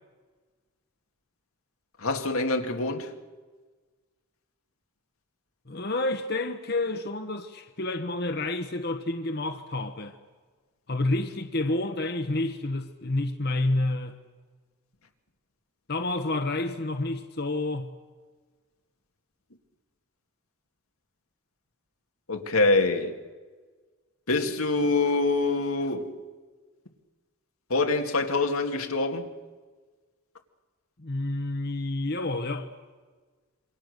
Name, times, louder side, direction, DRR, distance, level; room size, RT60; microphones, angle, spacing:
voice 1, 2.0-3.1 22.3-23.2 24.3-26.1 27.7-29.3, left 3 dB, 85° left, 2.1 m, -25 dB
voice 2, 5.7-10.2 10.9-14.2 15.9-17.9 31.0-32.7, left 2 dB, 50° left, 1.1 m, -29 dB
27.0 x 25.0 x 6.6 m
head